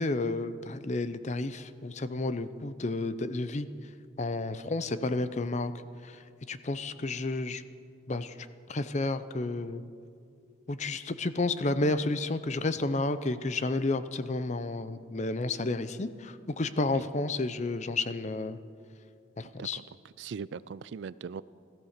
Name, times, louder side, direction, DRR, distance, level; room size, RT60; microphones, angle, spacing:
voice 1, 0.0-3.7 4.2-5.7 6.0-6.2 6.5-7.6 8.1-8.3 8.7-9.8 10.7-18.6 19.4-19.8, left 2 dB, 35° left, 13 dB, 0.6 m, -31 dB
voice 2, 19.4-19.8 20.2-21.4, right 6 dB, 65° right, 18 dB, 0.4 m, -40 dB
16.0 x 14.0 x 6.6 m, 2.3 s
head